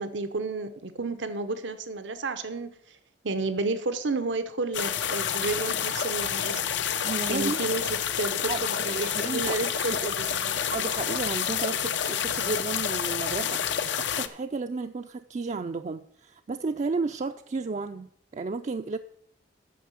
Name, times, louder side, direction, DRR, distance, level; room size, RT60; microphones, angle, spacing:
voice 1, 0.0-3.0 3.2-6.6 7.3-10.6, right 3 dB, 85° right, 10 dB, 0.8 m, -31 dB
sound 1, 4.7-14.3, left 8 dB, 80° left, 0.7 m, -29 dB
voice 2, 7.0-7.6 8.5-10.0 10.7-13.8 14.2-19.0, right 4 dB, 40° right, 7 dB, 0.4 m, -33 dB
9.3 x 6.4 x 7.5 m, 0.67 s
head